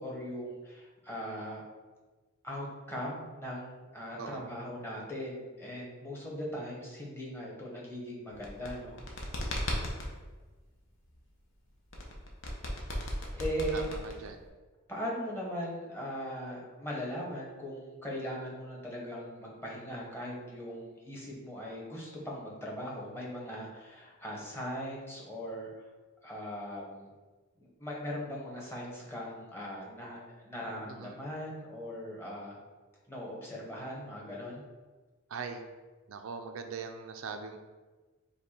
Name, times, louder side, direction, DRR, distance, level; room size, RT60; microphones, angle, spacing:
voice 1, 0.0-1.6 2.4-9.0 12.9-13.9 14.9-25.8 26.2-27.1 27.6-30.2 30.4-32.6 33.1-34.6, equal, 10° left, -4 dB, 0.9 m, -39 dB
voice 2, 4.2-4.5 13.7-14.4 31.0-31.2 35.3-35.6 36.1-37.6, right 5 dB, 75° right, 6 dB, 0.4 m, -41 dB
sound 1, 8.3-10.1 11.9-14.5, left 1 dB, 60° left, 0.8 m, -36 dB
5.2 x 2.2 x 4.3 m, 1.3 s
head